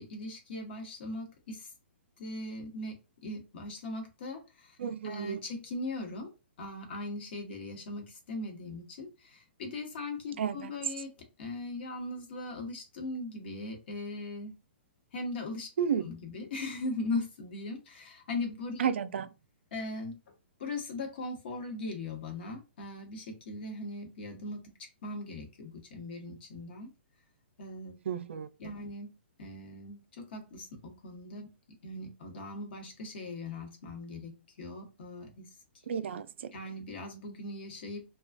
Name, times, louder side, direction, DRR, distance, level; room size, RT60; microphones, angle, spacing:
voice 1, 0.0-1.7 2.2-4.8 5.0-6.3 6.6-14.6 15.1-15.7 16.0-18.9 19.7-20.2 20.6-24.7 25.0-26.9 27.6-28.0 28.6-29.1 29.4-31.5 31.8-35.5 36.5-38.0, left 2 dB, 60° left, 1.0 m, -39 dB
voice 2, 4.8-5.4 10.4-10.7 15.8-16.0 18.8-19.3 28.1-28.5 35.9-36.5, right 8 dB, 75° right, 0.3 m, -32 dB
2.4 x 2.2 x 2.5 m
hypercardioid pair, 145°, 6 cm